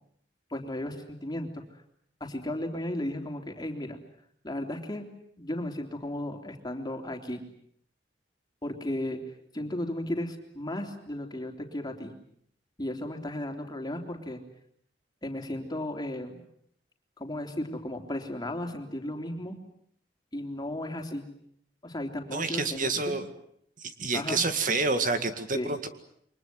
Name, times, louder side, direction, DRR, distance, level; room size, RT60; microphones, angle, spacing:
voice 1, 0.5-1.6 2.2-4.0 4.4-5.1 5.4-7.4 8.6-9.2 9.5-12.1 12.8-14.4 15.2-16.4 17.2-19.6 20.3-21.3 21.8-23.2 24.1-24.4 25.5-25.7, left 1 dB, 25° left, 3 dB, 3.5 m, -35 dB
voice 2, 22.3-23.2 24.0-25.9, right 3 dB, 50° right, 9 dB, 2.0 m, -28 dB
28.5 x 24.0 x 7.8 m, 0.67 s
head